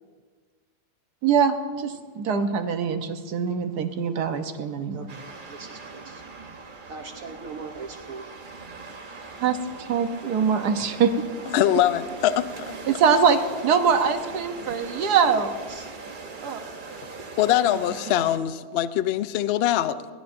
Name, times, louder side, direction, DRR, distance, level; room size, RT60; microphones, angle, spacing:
voice 1, 1.2-5.1 9.4-11.2 12.9-15.5 16.4-16.6, right 6 dB, 85° right, 8 dB, 1.4 m, -23 dB
voice 2, 4.9-6.2 6.9-8.3 15.3-15.9, right 4 dB, 60° right, 4 dB, 1.2 m, -40 dB
sound 1, 5.1-18.4, right 4 dB, 40° right, 1.0 m, -40 dB
voice 3, 11.5-12.7 17.4-20.0, left 12 dB, 70° left, 14 dB, 0.5 m, -23 dB
22.5 x 16.5 x 2.6 m, 1.5 s
omnidirectional pair, 1.7 m